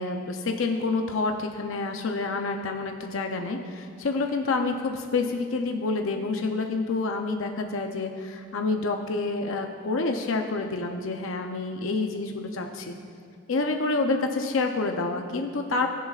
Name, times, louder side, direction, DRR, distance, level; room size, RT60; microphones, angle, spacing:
voice 1, 0.0-12.9 13.5-15.9, left 3 dB, 85° left, 4 dB, 0.6 m, -28 dB
20.0 x 7.1 x 2.4 m, 2.3 s
head